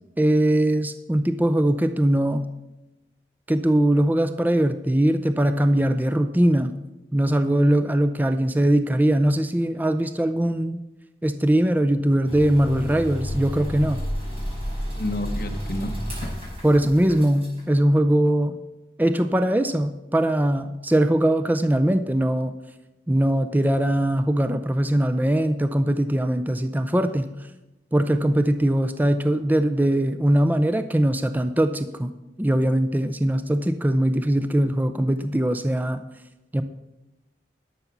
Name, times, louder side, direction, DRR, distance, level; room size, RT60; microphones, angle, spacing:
voice 1, 0.2-2.5 3.5-6.8 7.1-10.8 11.2-14.0 16.6-18.6 19.0-22.5 23.1-27.4 27.9-36.0 36.5-36.6, right 1 dB, 10° right, 10 dB, 0.4 m, -21 dB
sound 1, 12.2-17.6, equal, 35° right, 5.0 m, -31 dB
voice 2, 14.9-16.3, left 1 dB, 55° left, 4 dB, 1.0 m, -30 dB
12.0 x 6.9 x 5.9 m, 0.98 s
head